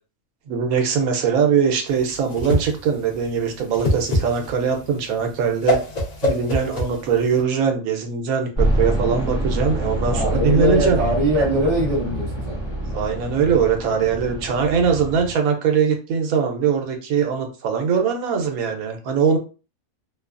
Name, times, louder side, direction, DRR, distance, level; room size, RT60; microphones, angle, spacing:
voice 1, 0.5-5.8 6.2-11.0 12.9-19.4, right 6 dB, 85° right, 4 dB, 1.1 m, -21 dB
Whoosh swoosh swish, 1.9-7.4, left 1 dB, 50° left, 0.4 m, -25 dB
sound 1, 8.5-15.3, right 1 dB, 25° left, 0.8 m, -26 dB
voice 2, 10.1-12.6, equal, 35° right, -2 dB, 0.7 m, -22 dB
2.7 x 2.2 x 2.4 m, 0.35 s
omnidirectional pair, 1.5 m